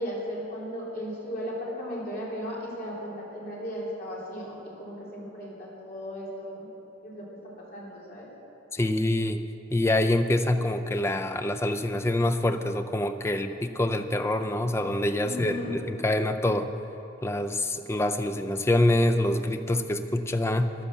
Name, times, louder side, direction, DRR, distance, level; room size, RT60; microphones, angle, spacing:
voice 1, 0.0-6.7 7.0-7.3 7.6-8.3 15.2-15.7, equal, 45° left, -6 dB, 3.4 m, -36 dB
voice 2, 8.7-9.4 9.7-16.7 17.2-20.7, left 1 dB, 15° left, 8 dB, 0.4 m, -26 dB
11.0 x 10.5 x 7.3 m, 2.9 s
head